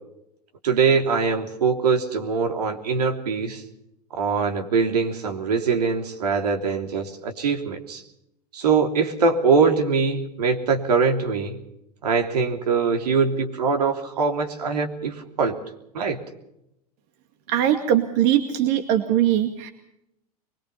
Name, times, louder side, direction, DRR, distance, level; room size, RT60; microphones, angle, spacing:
voice 1, 0.6-3.6 4.1-8.0 8.5-11.6 12.0-15.6 15.9-16.2, right 5 dB, 75° right, 4 dB, 3.3 m, -22 dB
voice 2, 17.5-19.7, right 11 dB, 55° right, 7 dB, 2.2 m, -21 dB
23.5 x 22.0 x 5.6 m, 0.81 s
hypercardioid pair, 90°, 20 cm